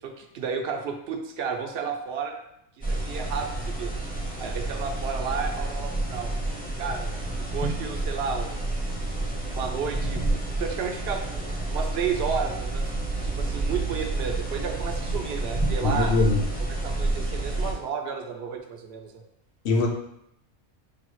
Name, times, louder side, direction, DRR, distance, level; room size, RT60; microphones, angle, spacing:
voice 1, 0.0-2.4 2.8-3.9 4.4-6.3 6.8-7.1 7.5-8.6 9.5-12.9 13.2-16.1 16.7-19.2, right 6 dB, 55° right, 3 dB, 0.8 m, -32 dB
sound 1, 2.8-17.7, right 2 dB, 10° left, 0.6 m, -29 dB
voice 2, 15.8-16.4 19.6-19.9, left 3 dB, 60° left, 2 dB, 0.9 m, -22 dB
6.8 x 2.4 x 3.1 m, 0.78 s
omnidirectional pair, 1.4 m